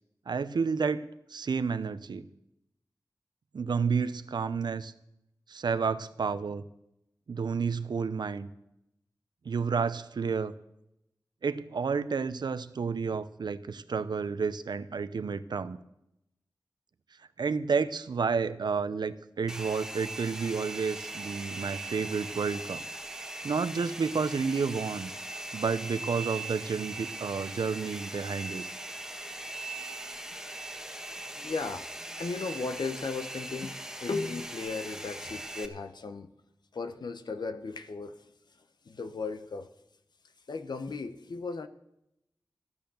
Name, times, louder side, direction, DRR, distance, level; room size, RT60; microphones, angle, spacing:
voice 1, 0.3-1.0 1.3-2.3 3.5-4.9 5.5-6.6 7.3-8.5 9.4-10.5 11.4-15.8 17.4-22.8 23.4-25.1 25.5-28.6, right 5 dB, 85° right, 14 dB, 0.6 m, -30 dB
Domestic sounds home sounds, 19.5-35.7, right 2 dB, 5° right, 1.4 m, -40 dB
voice 2, 30.9-31.9 32.1-36.3 36.7-39.7 40.5-41.7, left 4 dB, 80° left, 9 dB, 0.9 m, -36 dB
14.0 x 10.5 x 6.9 m, 0.84 s
wide cardioid pair, 55°, 7 cm